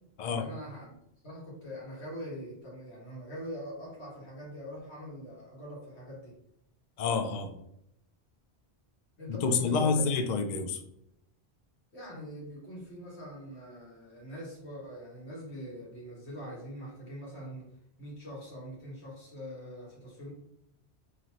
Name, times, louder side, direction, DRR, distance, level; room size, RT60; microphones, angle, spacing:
voice 1, 0.2-1.0 1.2-6.4 9.2-10.1 11.9-17.7 18.0-20.3, equal, 80° left, -5 dB, 2.0 m, -43 dB
voice 2, 7.0-7.6 9.3-10.8, left 4 dB, 55° left, 6 dB, 0.5 m, -28 dB
4.0 x 3.1 x 3.0 m, 0.77 s
omnidirectional pair, 1.1 m